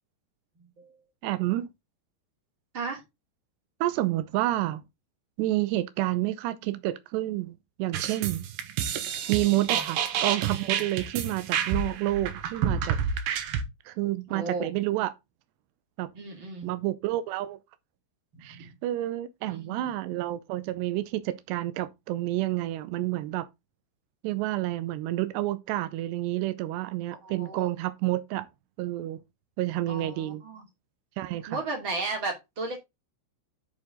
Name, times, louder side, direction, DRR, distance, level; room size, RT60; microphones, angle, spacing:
voice 1, 1.2-1.7 3.8-4.8 5.4-8.4 9.3-13.0 13.9-15.1 16.0-16.1 16.6-17.6 18.4-23.5 24.2-28.5 28.8-29.2 29.6-30.4 31.2-31.6, right 16 dB, 90° right, 2.9 m, -29 dB
sound 1, 7.9-13.6, right 8 dB, 70° right, 2.6 m, -29 dB
voice 2, 14.3-14.7 16.1-16.7 18.5-18.7 19.4-19.9 27.2-27.7 29.9-30.6 31.5-32.8, right 3 dB, 35° right, 2.8 m, -35 dB
8.7 x 6.4 x 3.8 m
omnidirectional pair, 4.7 m